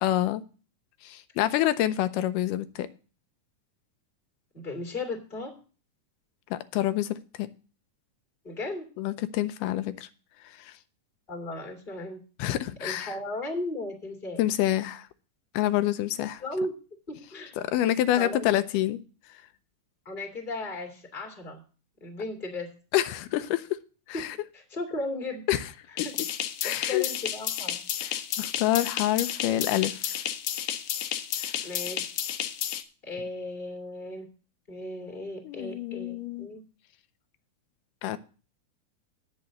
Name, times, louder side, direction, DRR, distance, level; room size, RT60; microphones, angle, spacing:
voice 1, 0.0-0.4 1.0-2.9 6.5-7.5 9.0-10.1 10.6-10.7 12.4-13.1 14.4-15.1 15.5-16.4 17.6-19.0 22.9-23.7 24.1-24.4 25.5-25.6 26.6-27.1 28.0-28.1 28.4-30.2 31.5-31.6 35.4-36.5 38.0-38.2, left 13 dB, 90° left, 11 dB, 2.2 m, -27 dB
voice 2, 4.5-5.5 8.4-8.9 11.3-12.2 12.8-14.4 16.4-16.7 17.1-17.6 18.2-18.5 20.0-21.6 22.0-22.7 24.1-24.2 24.5-25.5 26.0-26.1 26.6-27.8 31.6-32.0 33.0-34.3 34.7-36.6, left 2 dB, 15° left, 2 dB, 2.1 m, -35 dB
sound 1, 26.0-32.8, left 11 dB, 75° left, 2.1 m, -32 dB
8.5 x 6.4 x 7.6 m, 0.37 s
omnidirectional pair, 3.7 m